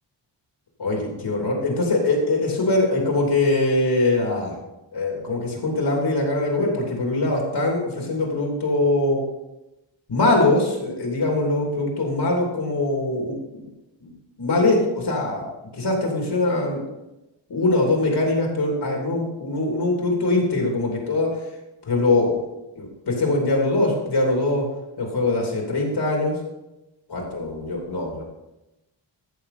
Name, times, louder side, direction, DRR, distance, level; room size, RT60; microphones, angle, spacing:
voice 1, 0.8-4.6 4.9-9.2 10.1-13.6 14.0-14.1 14.4-15.5 15.7-16.8 17.5-21.3 21.9-22.4 22.7-24.7 25.0-26.4 27.1-28.2, left 2 dB, 60° left, -1 dB, 3.0 m, -22 dB
14.0 x 6.7 x 4.2 m, 0.97 s
wide cardioid pair, 130°, 47 cm